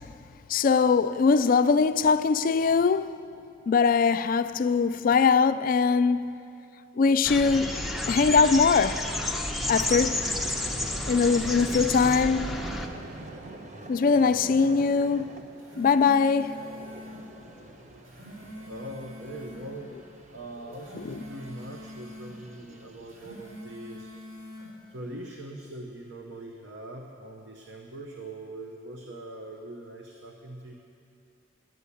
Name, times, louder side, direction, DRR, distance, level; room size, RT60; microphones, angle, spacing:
voice 1, 0.5-3.2 3.7-6.4 7.0-9.1 9.7-10.3 11.1-12.6 13.9-15.4 15.8-16.6 21.0-21.1, left 5 dB, 45° left, 0.3 m, -22 dB
sound 1, 7.2-12.9, left 1 dB, ahead, 0.6 m, -30 dB
Vehicle, 8.2-24.5, right 2 dB, 35° right, 0.8 m, -46 dB
sound 2, 15.4-17.2 17.9-19.7 20.5-22.3 23.0-24.7, left 1 dB, 80° right, 4.0 m, -44 dB
voice 2, 18.6-19.9 20.3-24.4 24.9-30.7, right 1 dB, 65° right, 0.8 m, -42 dB
11.0 x 9.7 x 8.4 m
head